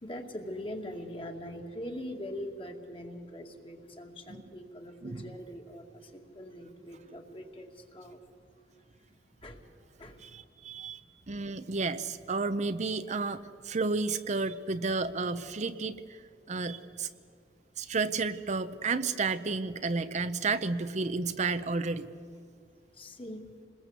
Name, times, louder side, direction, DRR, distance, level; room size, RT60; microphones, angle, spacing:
voice 1, 0.0-8.2 9.4-9.6 10.0-10.2 11.2-11.3 22.9-23.4, equal, 30° left, 3 dB, 2.4 m, -42 dB
voice 2, 5.0-5.3 10.2-11.0 11.3-17.1 17.8-22.1, right 4 dB, 40° right, 11 dB, 0.7 m, -32 dB
27.0 x 21.0 x 8.2 m, 2.2 s
head